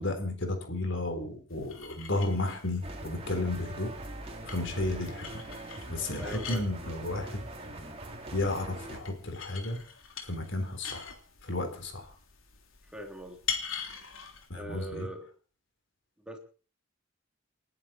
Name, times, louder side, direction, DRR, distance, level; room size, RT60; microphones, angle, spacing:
voice 1, 0.0-3.9 4.5-5.3 5.9-7.4 8.3-9.8 10.2-11.1 11.4-12.1 14.5-15.1, left 2 dB, 65° left, 6 dB, 3.9 m, -33 dB
sound 1, 1.5-14.5, left 7 dB, 85° left, 3.4 m, -43 dB
sound 2, 2.8-9.0, right 1 dB, 30° right, 3.4 m, -42 dB
voice 2, 6.2-6.7 12.9-13.4 14.5-15.3 16.2-16.4, right 1 dB, 5° right, 2 dB, 3.3 m, -41 dB
29.0 x 11.0 x 4.5 m, 0.39 s
head